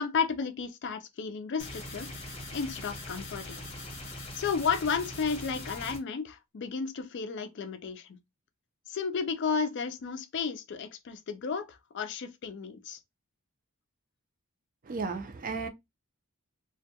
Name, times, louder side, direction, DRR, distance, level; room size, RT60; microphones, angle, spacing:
voice 1, 0.0-3.6 4.4-8.2 8.9-13.0, left 5 dB, 50° left, 0.4 m, -33 dB
sound 1, 1.6-6.0, left 1 dB, 25° left, 0.7 m, -41 dB
voice 2, 14.8-15.7, right 4 dB, 35° right, 0.4 m, -34 dB
2.2 x 2.2 x 2.7 m
head